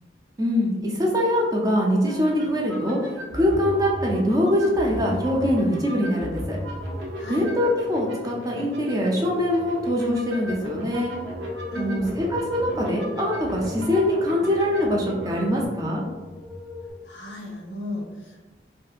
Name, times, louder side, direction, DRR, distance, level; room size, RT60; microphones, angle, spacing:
voice 1, 0.4-3.0 3.3-6.6 7.3-11.1 11.8-12.2 12.5-16.0, left 1 dB, 20° right, -2 dB, 0.4 m, -23 dB
sound 1, 2.0-15.7, equal, 85° right, 0.6 m, -36 dB
sound 2, 6.8-16.9, left 2 dB, 60° right, 0.9 m, -40 dB
voice 2, 11.7-12.1 17.0-18.5, left 1 dB, 75° left, 0 dB, 0.6 m, -34 dB
2.7 x 2.3 x 2.4 m, 1.2 s
head